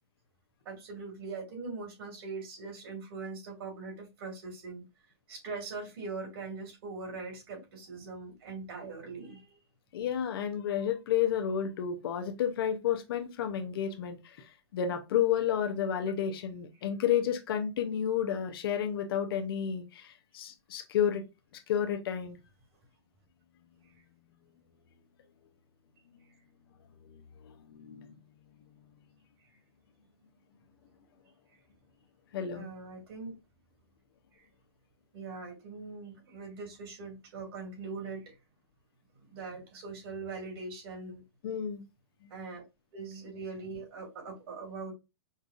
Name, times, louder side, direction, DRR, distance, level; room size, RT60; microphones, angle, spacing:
voice 1, 0.6-4.8 5.3-9.6 32.5-33.4 34.3-34.5 35.1-38.3 39.3-41.2 42.3-42.6 42.9-44.9, right 4 dB, 60° right, 2.4 m, -41 dB
voice 2, 9.9-14.5 14.7-21.2 21.7-22.4 27.1-28.1 32.3-32.7 41.4-41.8 42.2-42.3, left 9 dB, 55° left, 0.7 m, -31 dB
5.3 x 2.4 x 2.4 m
hypercardioid pair, 155°, 14 cm